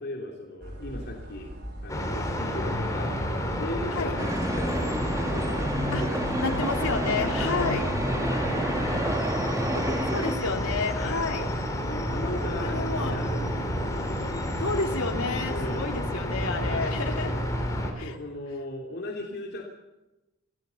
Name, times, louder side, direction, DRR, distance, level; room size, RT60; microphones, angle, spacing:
voice 1, 0.0-1.5 1.8-3.2 3.5-5.5 5.9-6.5 8.1-8.9 9.7-10.0 10.9-11.3 11.9-14.6 15.5-15.9 16.6-16.9 17.8-19.7, left 1 dB, 50° left, 0 dB, 3.0 m, -37 dB
sound 1, 0.6-17.8, equal, 50° right, 5.6 m, -40 dB
sound 2, 1.9-17.9, left 1 dB, 15° left, 3.5 m, -30 dB
sound 3, 4.2-10.4, right 1 dB, 15° right, 1.8 m, -30 dB
voice 2, 6.4-7.9 10.1-11.5 12.6-13.2 14.6-17.3 18.0-18.2, left 3 dB, 85° left, 2 dB, 2.9 m, -30 dB
27.0 x 17.0 x 7.0 m, 1.0 s
head